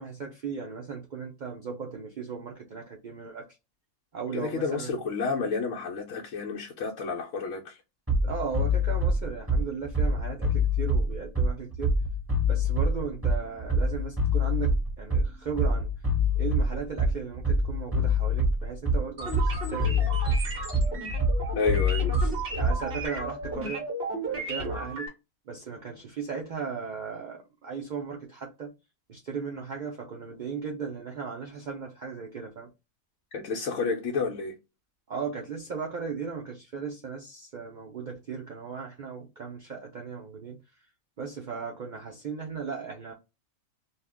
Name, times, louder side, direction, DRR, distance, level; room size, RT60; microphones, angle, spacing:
voice 1, 0.0-3.6 4.1-5.0 8.2-11.9 12.5-15.9 16.4-20.4 22.6-23.8 24.3-25.1 25.5-28.7 29.1-32.7 35.1-40.6 41.2-43.1, right 5 dB, 75° right, 0.4 m, -36 dB
voice 2, 4.3-7.8 21.6-22.1 33.3-34.5, left 4 dB, 65° left, 0.9 m, -30 dB
Bass drum, 8.1-23.1, left 1 dB, 10° right, 1.5 m, -25 dB
sound 1, 19.2-25.1, right 2 dB, 45° right, 1.3 m, -34 dB
2.7 x 2.4 x 3.4 m
omnidirectional pair, 1.5 m